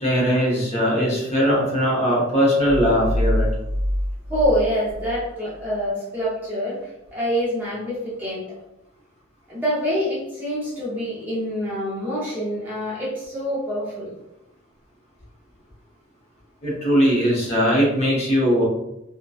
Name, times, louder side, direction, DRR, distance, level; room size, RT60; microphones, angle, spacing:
voice 1, 0.0-3.5 16.6-18.6, equal, 30° left, -5 dB, 0.7 m, -20 dB
sound 1, 2.7-5.3, equal, 40° right, 0.9 m, -25 dB
voice 2, 4.3-8.5 9.5-14.1, equal, 10° right, -8 dB, 0.6 m, -26 dB
2.7 x 2.1 x 2.2 m, 0.88 s
head